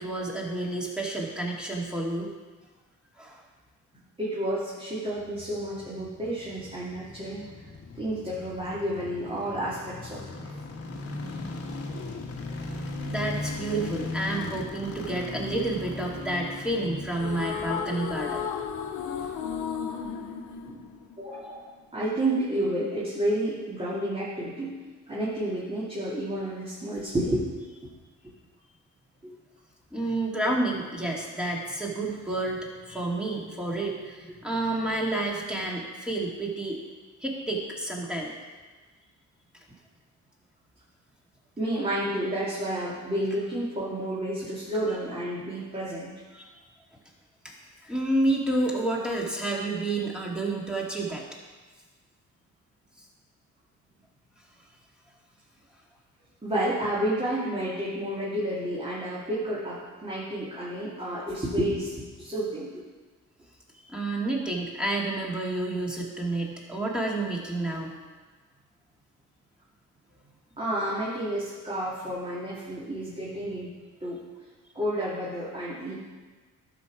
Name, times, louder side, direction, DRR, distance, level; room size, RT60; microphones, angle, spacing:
voice 1, 0.0-2.3 3.2-3.4 13.0-18.5 19.1-19.3 29.9-36.8 37.2-38.3 46.3-46.5 47.4-47.5 47.8-51.2 63.8-67.9, right 2 dB, 5° right, -3 dB, 2.5 m, -30 dB
voice 2, 4.2-7.4 7.9-10.5 19.5-19.6 20.6-20.8 21.2-24.7 25.1-27.5 27.8-27.9 29.2-29.4 41.6-46.1 56.4-62.8 70.6-73.7 74.0-74.2 74.7-75.9, right 1 dB, 20° right, -8 dB, 2.8 m, -30 dB
sound 1, 5.1-20.3 20.6-20.7, left 2 dB, 50° left, 1.5 m, -38 dB
sound 2, 17.1-21.6, left 7 dB, 85° left, 0.9 m, -34 dB
12.0 x 6.6 x 5.0 m, 1.3 s
cardioid pair, 90°, 30 cm